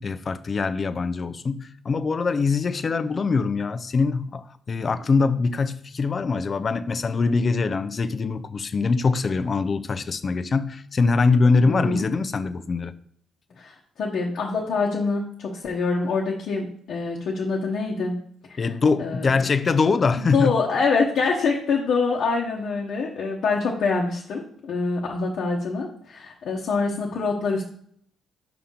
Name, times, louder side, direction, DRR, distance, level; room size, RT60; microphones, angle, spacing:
voice 1, 0.0-12.9 18.6-20.5, left 4 dB, 40° left, 0.5 m, -23 dB
voice 2, 11.6-12.0 13.6-18.2 18.5-18.6 19.0-19.5 20.2-27.6, left 4 dB, 65° left, 1.1 m, -25 dB
5.7 x 5.6 x 3.8 m
cardioid pair, 90°, 0 cm